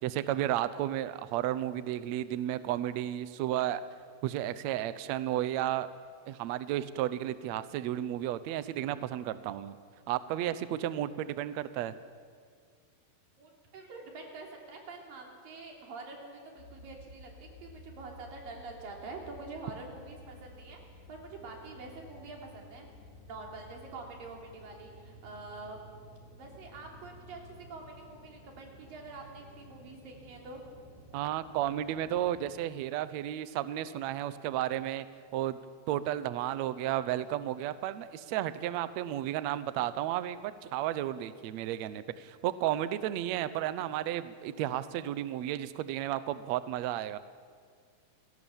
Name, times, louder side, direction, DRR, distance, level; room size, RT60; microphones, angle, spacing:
voice 1, 0.0-3.8 4.2-5.9 6.3-9.7 10.1-12.0 31.1-35.1 35.3-35.6 35.9-47.2, right 12 dB, 85° right, 14 dB, 1.5 m, -33 dB
voice 2, 13.4-22.9 23.3-25.8 26.4-30.6, right 3 dB, 70° right, 1 dB, 4.9 m, -46 dB
sound 1, 16.6-32.6, left 1 dB, 80° left, 5.6 m, -53 dB
30.0 x 17.5 x 7.2 m, 2.1 s
omnidirectional pair, 4.3 m